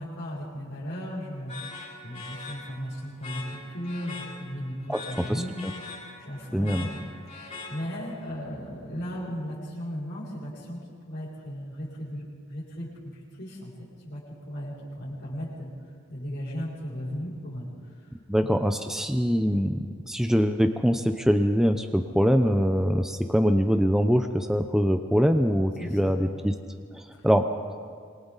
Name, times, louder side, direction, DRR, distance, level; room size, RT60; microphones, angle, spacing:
voice 1, 0.0-5.6 6.2-6.9 7.7-13.7 14.0-14.2 14.4-15.7 16.1-17.7 18.0-18.1 18.4-18.5 25.8-26.1 27.1-27.3, equal, 55° left, -10 dB, 6.8 m, -36 dB
sound 1, 1.5-8.2, left 3 dB, 35° left, 7.4 m, -42 dB
voice 2, 6.5-6.9 18.3-26.5 26.9-27.5, equal, ahead, 6 dB, 0.7 m, -23 dB
27.0 x 25.0 x 4.1 m, 2.1 s
head